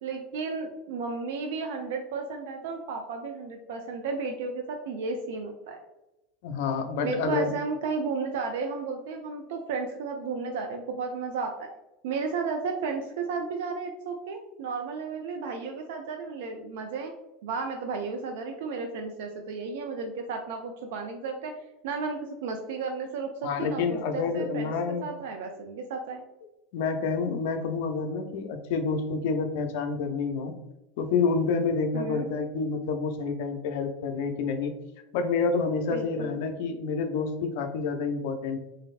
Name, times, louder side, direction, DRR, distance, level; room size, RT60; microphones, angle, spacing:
voice 1, 0.0-5.8 7.0-11.7 12.0-17.1 17.4-21.5 21.8-24.7 25.0-26.2 31.9-32.3 35.9-36.4, right 4 dB, 70° right, 3 dB, 0.3 m, -33 dB
voice 2, 6.4-7.5 23.4-25.1 26.7-30.5 31.0-34.7 35.1-38.6, left 5 dB, 65° left, 6 dB, 0.4 m, -28 dB
3.1 x 2.5 x 2.4 m, 0.95 s
hypercardioid pair, 80°, 0 cm